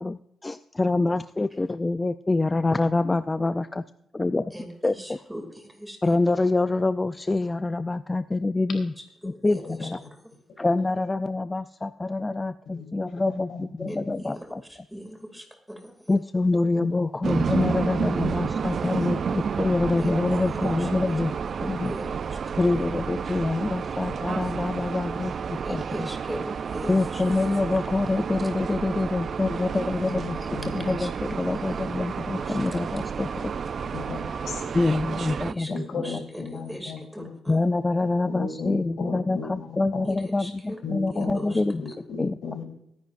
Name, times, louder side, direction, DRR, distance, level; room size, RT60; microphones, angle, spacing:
voice 1, 0.0-3.8 4.1-4.5 4.8-5.2 6.0-8.9 9.2-10.0 10.6-14.6 16.1-21.3 21.6-21.9 22.6-26.1 26.9-33.3 34.7-35.8 37.5-41.8 42.2-42.3, left 2 dB, 20° left, 12 dB, 0.3 m, -26 dB
voice 2, 4.5-6.0 9.2-9.9 13.9-15.9 20.0-20.1 20.8-20.9 21.6-22.4 25.6-27.2 30.4-31.3 31.7-31.8 32.3-32.6 35.5-36.4 36.7-37.6 40.0-40.8 41.1-41.6, equal, 5° right, 4 dB, 2.4 m, -40 dB
voice 3, 9.4-9.9 12.7-14.1 16.3-16.5 16.7-16.9 17.6-17.9 18.4-18.5 29.6-30.9 33.9-34.8 35.7-37.3 38.0-40.0 40.8-42.6, left 5 dB, 80° left, 3 dB, 3.2 m, -37 dB
sound 1, 17.2-35.5, right 6 dB, 50° right, 0.4 m, -30 dB
23.0 x 10.5 x 2.5 m, 0.79 s
cardioid pair, 125°, 0 cm